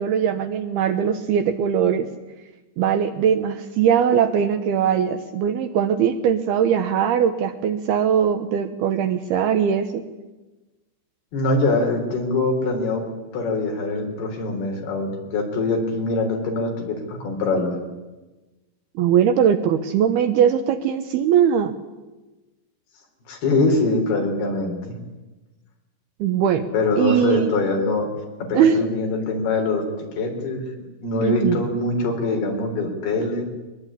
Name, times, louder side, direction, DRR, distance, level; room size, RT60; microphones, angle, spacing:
voice 1, 0.0-2.1 2.8-10.0 19.0-21.7 26.2-26.7 27.0-27.5 28.5-28.8 31.2-31.7, right 8 dB, 70° right, 9 dB, 2.6 m, -20 dB
voice 2, 11.3-13.1 13.3-17.8 23.3-25.0 26.7-28.1 28.4-30.7 31.0-33.4, left 3 dB, 60° left, 3 dB, 5.8 m, -23 dB
22.5 x 21.0 x 9.9 m, 1.1 s
omnidirectional pair, 5.2 m